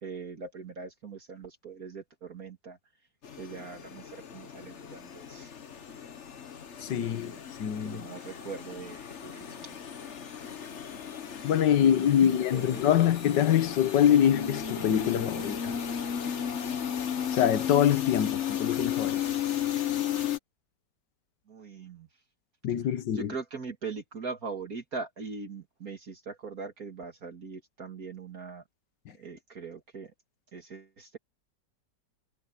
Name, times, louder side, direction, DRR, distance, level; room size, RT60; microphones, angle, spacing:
voice 1, 0.0-2.8 3.4-5.5 7.0-9.8 11.8-12.9 21.5-22.1 23.1-28.6 29.1-30.1 30.5-31.2, right 4 dB, 55° right, 2.6 m, -41 dB
sound 1, 3.2-20.4, left 9 dB, 45° left, 1.3 m, -35 dB
voice 2, 6.8-7.3 7.6-8.0 11.4-15.8 17.3-19.2 22.6-23.3, left 10 dB, 80° left, 1.7 m, -24 dB
omnidirectional pair, 1.9 m